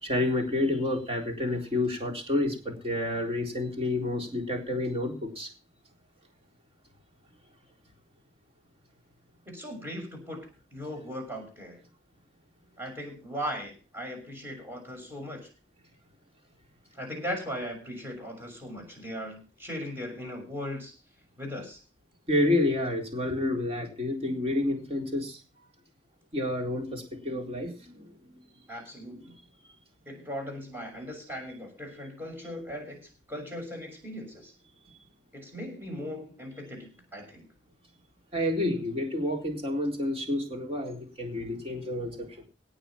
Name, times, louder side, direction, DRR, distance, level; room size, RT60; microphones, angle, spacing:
voice 1, 0.0-5.5 22.3-25.4 26.3-28.0 38.3-42.3, left 1 dB, 35° right, 1 dB, 3.9 m, -29 dB
voice 2, 9.5-10.4 10.7-11.8 12.8-15.5 17.0-20.9 21.4-21.8 28.7-29.3 30.1-33.0 33.3-34.5 35.3-37.4, equal, 15° right, 2 dB, 6.3 m, -38 dB
17.5 x 7.0 x 6.0 m, 0.35 s
head